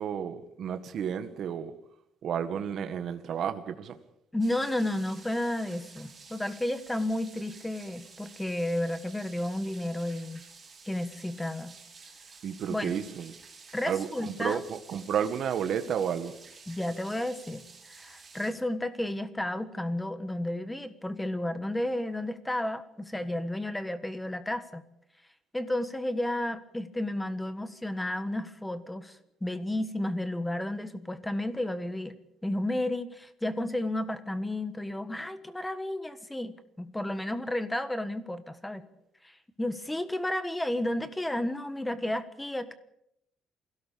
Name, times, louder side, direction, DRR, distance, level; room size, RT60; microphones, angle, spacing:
voice 1, 0.0-1.7 2.2-4.0 12.4-13.3 13.8-16.3, right 8 dB, 45° right, 9 dB, 1.7 m, -32 dB
voice 2, 4.3-10.4 10.8-11.7 12.7-12.9 13.7-14.6 16.7-24.8 25.5-32.2 32.4-38.8 39.2-42.7, left 1 dB, 5° left, 12 dB, 1.4 m, -32 dB
sound 1, 4.4-18.5, right 4 dB, 20° right, 5.0 m, -51 dB
23.0 x 17.0 x 8.6 m, 0.77 s
cardioid pair, 180°, 0 cm